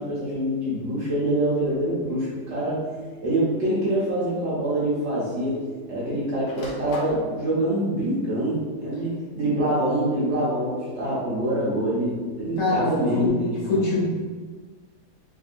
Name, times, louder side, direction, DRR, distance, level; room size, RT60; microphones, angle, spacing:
voice 1, 0.0-2.8 3.2-5.5 5.9-13.8, right 1 dB, 55° right, -8 dB, 0.9 m, -25 dB
Telephone, 1.1-13.3, equal, 30° right, 0.7 m, -44 dB
Wood Door Open and Close, 1.6-1.9 2.9-3.0 4.5-4.6 4.8-5.9 6.2-7.3, left 1 dB, 65° left, 1.2 m, -39 dB
voice 2, 12.6-13.3 13.7-14.1, left 2 dB, 85° left, -5 dB, 1.5 m, -24 dB
3.6 x 2.6 x 2.4 m, 1.5 s
omnidirectional pair, 1.8 m